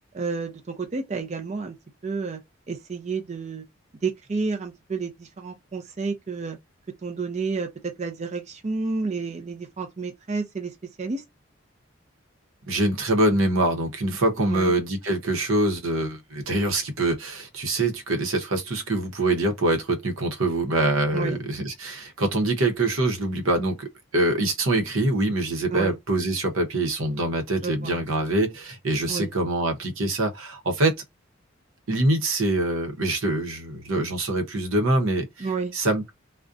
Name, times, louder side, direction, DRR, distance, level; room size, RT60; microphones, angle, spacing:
voice 1, 0.1-1.8 2.0-2.4 2.7-3.7 4.0-6.6 7.0-11.2 14.5-14.7 21.1-21.4 25.7-26.0 27.6-28.0 29.1-29.3 35.4-35.7, right 4 dB, 35° right, 0.4 m, -30 dB
voice 2, 12.7-30.9 31.9-35.5 35.7-36.1, right 2 dB, 85° right, 0.8 m, -24 dB
2.4 x 2.1 x 2.5 m
head